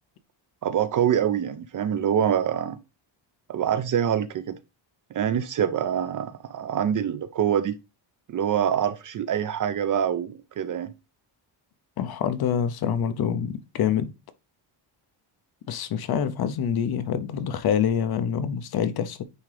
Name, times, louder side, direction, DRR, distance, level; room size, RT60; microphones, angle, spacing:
voice 1, 0.6-2.8 3.5-4.6 5.1-7.8 8.3-10.9, right 9 dB, 40° right, 0.5 m, -25 dB
voice 2, 12.0-14.1 15.7-19.2, left 8 dB, 50° left, 0.7 m, -26 dB
9.3 x 3.6 x 3.3 m
cardioid pair, 165°, 49 cm